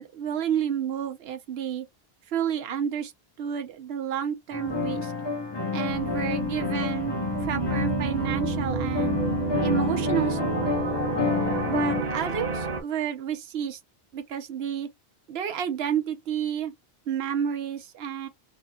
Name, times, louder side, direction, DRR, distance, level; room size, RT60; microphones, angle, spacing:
voice 1, 0.0-1.8 2.3-3.1 3.4-5.1 5.7-7.1 7.4-9.2 9.6-10.8 11.7-13.8 14.1-14.9 15.3-16.7 17.1-18.3, right 8 dB, 75° right, 1.0 m, -30 dB
sound 1, 4.5-12.0, left 4 dB, 30° left, 0.6 m, -29 dB
sound 2, 5.9-12.8, right 3 dB, 45° right, 0.9 m, -30 dB
3.7 x 2.9 x 2.2 m
omnidirectional pair, 1.1 m